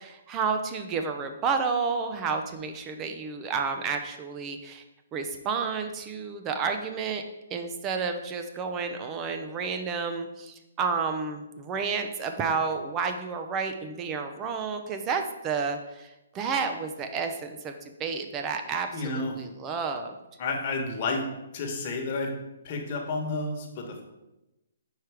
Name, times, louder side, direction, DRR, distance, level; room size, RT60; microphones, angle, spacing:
voice 1, 0.0-4.8 5.1-7.2 7.5-20.2, right 5 dB, 20° right, 5 dB, 0.5 m, -31 dB
voice 2, 18.9-19.3 20.4-21.2 21.5-22.3 22.6-24.0, left 3 dB, 40° left, 1 dB, 1.3 m, -30 dB
4.7 x 4.5 x 4.8 m, 0.97 s
hypercardioid pair, 145°, 0 cm